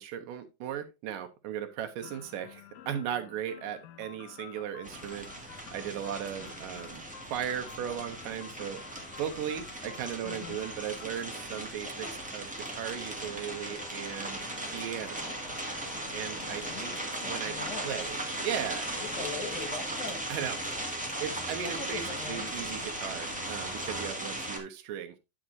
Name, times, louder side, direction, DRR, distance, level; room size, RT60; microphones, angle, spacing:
voice 1, 0.0-15.3 16.1-17.0 17.3-17.6 17.8-18.9 20.3-20.6 21.2-25.2, right 9 dB, 80° right, 2.5 m, -37 dB
sound 1, 2.0-11.7, left 10 dB, 80° left, 1.4 m, -51 dB
sound 2, 4.8-24.6, right 1 dB, 5° right, 0.9 m, -38 dB
voice 2, 10.2-10.6 11.9-12.2 16.6-18.0 19.0-20.2 21.6-22.5, left 5 dB, 60° left, 2.8 m, -41 dB
sound 3, 13.1-24.1, left 2 dB, 25° left, 1.0 m, -48 dB
9.9 x 7.6 x 2.5 m
omnidirectional pair, 4.0 m